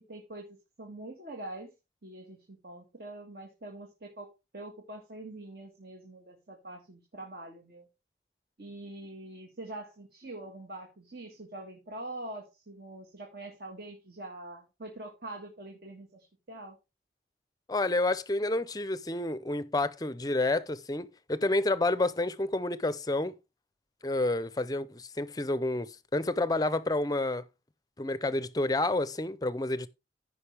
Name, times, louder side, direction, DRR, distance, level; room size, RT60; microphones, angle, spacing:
voice 1, 0.1-1.7 2.0-7.9 8.6-16.8, right 2 dB, 60° right, 1.7 m, -44 dB
voice 2, 17.7-23.3 24.0-27.4 28.0-29.9, left 2 dB, 20° left, 0.5 m, -29 dB
14.5 x 5.5 x 3.4 m
head